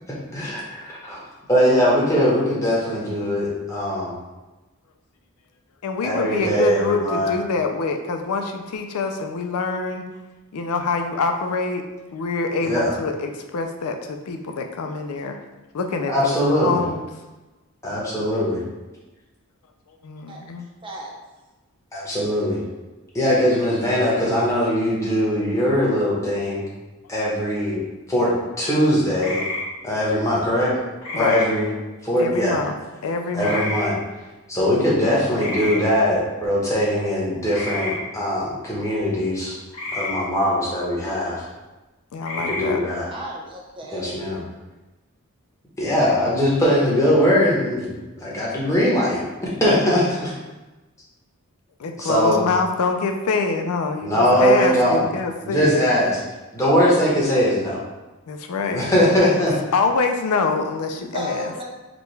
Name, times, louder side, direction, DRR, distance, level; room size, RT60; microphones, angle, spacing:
voice 1, 0.3-1.2 1.5-4.1 6.0-7.3 12.6-12.9 16.1-16.8 17.8-18.6 21.9-22.6 23.1-26.6 27.1-27.8 28.1-29.4 29.8-30.7 31.1-31.7 32.0-32.6 33.3-34.0 34.5-39.6 39.9-41.4 42.5-43.1 43.9-44.4 45.8-47.9 48.2-49.2 49.6-50.3 52.0-52.4 54.0-55.0 55.4-56.2 56.5-57.8 58.7-59.7, equal, 15° left, -6 dB, 1.0 m, -21 dB
voice 2, 5.8-10.0 10.5-11.8 12.1-15.4 15.7-17.1 20.0-20.7 31.1-31.4 32.2-32.7 33.0-33.7 42.1-42.8 51.8-55.9 58.3-58.8 59.7-61.5, left 4 dB, 85° left, 5 dB, 0.4 m, -25 dB
sound 1, 29.2-29.6 31.0-31.5 33.4-33.9 35.3-35.8 37.5-38.0 39.7-40.1 42.2-42.6, left 2 dB, 70° left, 1.0 m, -29 dB
voice 3, 43.1-44.2 61.1-61.6, right 1 dB, 20° right, -3 dB, 0.5 m, -34 dB
4.9 x 2.3 x 3.2 m, 1.1 s
head